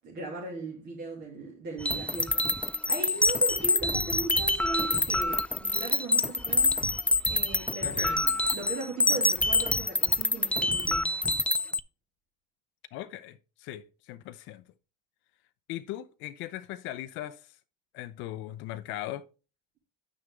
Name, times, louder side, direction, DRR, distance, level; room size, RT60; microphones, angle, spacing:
voice 1, 0.0-6.7 7.3-11.1, right 2 dB, 50° right, 2.5 m, -38 dB
sound 1, 1.8-11.8, left 2 dB, 5° left, 0.4 m, -26 dB
voice 2, 7.8-8.2 12.9-14.6 15.7-17.6 17.9-19.3, left 14 dB, 65° left, 0.6 m, -39 dB
8.7 x 6.2 x 3.3 m
supercardioid pair, 80°, 21 cm